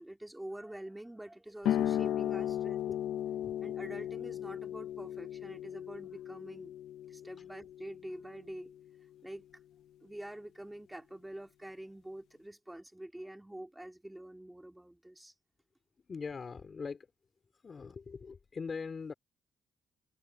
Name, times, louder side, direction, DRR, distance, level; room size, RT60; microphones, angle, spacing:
voice 1, 0.0-2.9 3.6-6.7 7.1-8.7 9.2-9.4 10.0-15.3, right 1 dB, 10° right, 2.8 m, -46 dB
sound 1, 1.6-8.8, left 11 dB, 80° left, 1.3 m, -36 dB
voice 2, 16.1-17.1 17.6-19.1, left 5 dB, 40° left, 4.5 m, -41 dB
cardioid pair, 90°, 0 cm